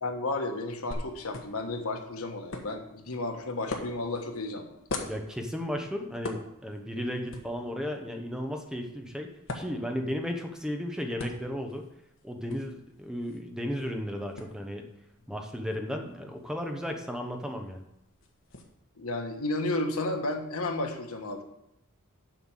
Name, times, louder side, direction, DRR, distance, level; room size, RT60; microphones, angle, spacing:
voice 1, 0.0-4.8 19.0-21.4, left 2 dB, 85° left, 4 dB, 1.3 m, -32 dB
sound 1, 0.9-18.6, left 2 dB, 65° left, 1.4 m, -44 dB
voice 2, 5.0-9.3 9.5-11.8 12.2-14.9 15.3-17.8, equal, 5° right, 3 dB, 1.0 m, -34 dB
7.5 x 5.7 x 7.3 m, 0.81 s
head